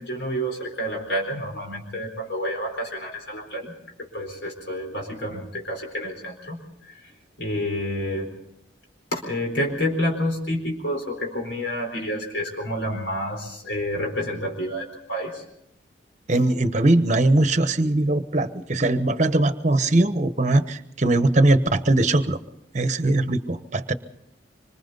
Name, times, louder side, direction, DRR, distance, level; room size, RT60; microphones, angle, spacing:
voice 1, 0.0-3.7 4.0-8.4 9.1-15.4, equal, 65° left, 1 dB, 4.3 m, -29 dB
voice 2, 16.3-22.4 22.7-23.9, right 2 dB, 40° right, 11 dB, 1.1 m, -20 dB
25.5 x 25.5 x 4.0 m, 0.79 s
head